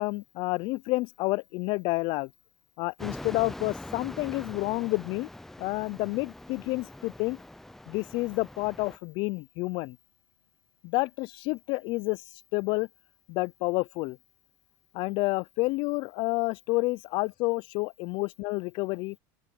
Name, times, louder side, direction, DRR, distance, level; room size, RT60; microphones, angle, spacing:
voice 1, 0.0-2.3 2.8-5.3 5.6-7.4 7.9-10.0 10.8-12.2 12.5-12.9 13.3-14.2 14.9-19.2, left 24 dB, 55° left, 0.5 m, -29 dB
sound 1, 3.0-9.0, left 1 dB, 5° left, 0.5 m, -43 dB
open air
supercardioid pair, 120°, 10 cm